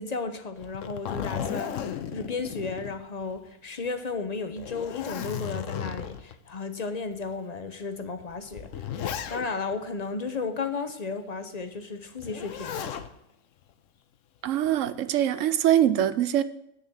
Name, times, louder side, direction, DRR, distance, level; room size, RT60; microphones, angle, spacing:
voice 1, 0.0-9.0 9.3-12.9, left 4 dB, 40° left, 0.6 m, -34 dB
Zipper (clothing), 0.6-3.5 3.9-4.0 4.5-6.3 7.1-7.2 8.2-9.7 12.2-13.1 14.5-14.9, left 8 dB, 65° left, 1.0 m, -35 dB
voice 2, 14.4-16.4, right 11 dB, 70° right, 0.9 m, -23 dB
8.6 x 6.5 x 7.5 m
omnidirectional pair, 1.5 m